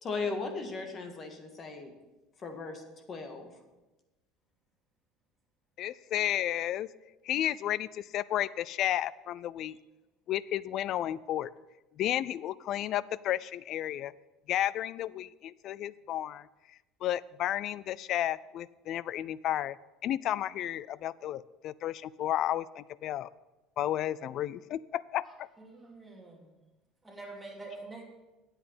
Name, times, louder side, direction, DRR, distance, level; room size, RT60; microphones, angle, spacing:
voice 1, 0.0-1.9 2.4-3.5, left 4 dB, 35° left, 5 dB, 1.7 m, -37 dB
voice 2, 5.8-6.9 7.2-9.8 10.3-11.5 12.0-14.1 14.5-16.5 17.0-19.8 20.0-23.3 23.8-25.5, left 12 dB, 50° left, 20 dB, 0.3 m, -32 dB
voice 3, 25.3-26.5 27.0-28.1, right 2 dB, 10° right, -2 dB, 2.6 m, -47 dB
9.6 x 8.2 x 5.7 m, 1.1 s
supercardioid pair, 120°, 0 cm